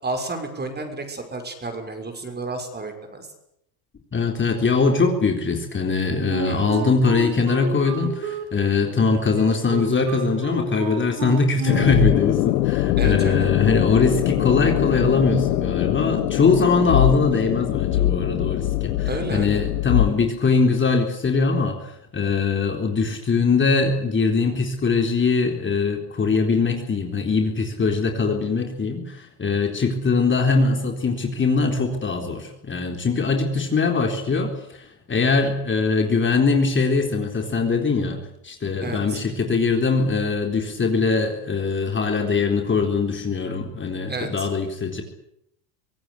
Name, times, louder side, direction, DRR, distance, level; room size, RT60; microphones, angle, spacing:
voice 1, 0.0-3.3 6.4-6.6 13.0-13.5 19.0-19.6 38.8-39.2 44.1-44.5, right 3 dB, 20° right, 6 dB, 6.2 m, -31 dB
voice 2, 4.1-45.0, left 4 dB, 25° left, 3 dB, 4.0 m, -22 dB
Wind instrument woodwind instrument, 6.3-12.2, right 7 dB, 85° right, 4.7 m, -31 dB
sound 1, 11.7-20.1, left 16 dB, 85° left, 1.5 m, -22 dB
25.0 x 17.5 x 9.9 m, 0.78 s
supercardioid pair, 105°, 47 cm